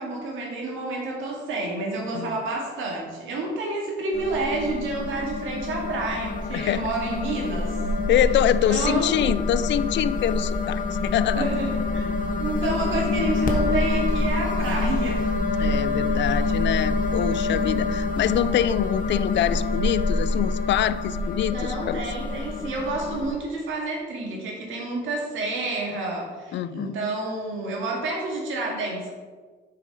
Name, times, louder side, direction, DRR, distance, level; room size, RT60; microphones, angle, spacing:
voice 1, 0.0-7.8 8.7-9.2 11.3-12.1 12.4-15.3 21.5-29.1, right 2 dB, 85° right, -1 dB, 2.2 m, -29 dB
sound 1, 4.1-23.3, left 3 dB, 45° left, 1.3 m, -26 dB
voice 2, 6.5-6.9 8.1-11.5 15.6-22.0 26.5-26.9, left 11 dB, 65° left, 15 dB, 0.4 m, -25 dB
7.4 x 5.8 x 4.9 m, 1.5 s
cardioid pair, 90°, 20 cm